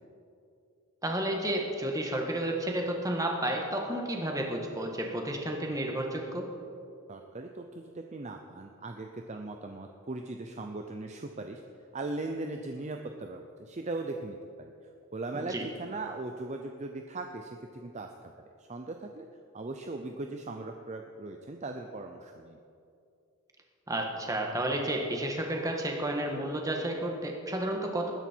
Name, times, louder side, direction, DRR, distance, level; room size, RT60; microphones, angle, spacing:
voice 1, 1.0-6.5 15.3-15.6 23.9-28.1, right 1 dB, 15° right, 1 dB, 1.5 m, -31 dB
voice 2, 7.1-11.6 11.9-14.7 15.1-18.3 18.6-19.3 19.5-22.6, right 2 dB, 30° right, 4 dB, 0.6 m, -39 dB
19.5 x 10.0 x 4.5 m, 2.5 s
head